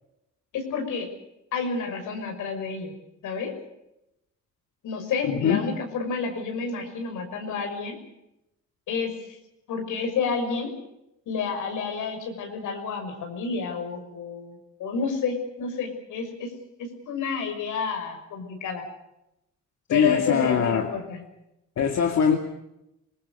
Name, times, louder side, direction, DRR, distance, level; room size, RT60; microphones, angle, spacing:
voice 1, 0.5-1.1 1.5-2.9 3.2-3.5 4.8-8.0 8.9-9.4 9.7-10.7 11.3-16.5 16.8-18.8 19.9-21.2, left 5 dB, 85° left, 5 dB, 6.3 m, -30 dB
voice 2, 5.3-5.6 19.9-20.9 21.8-22.4, left 7 dB, 60° left, 3 dB, 2.5 m, -22 dB
26.5 x 21.0 x 6.7 m, 0.87 s
cardioid pair, 90°, 30 cm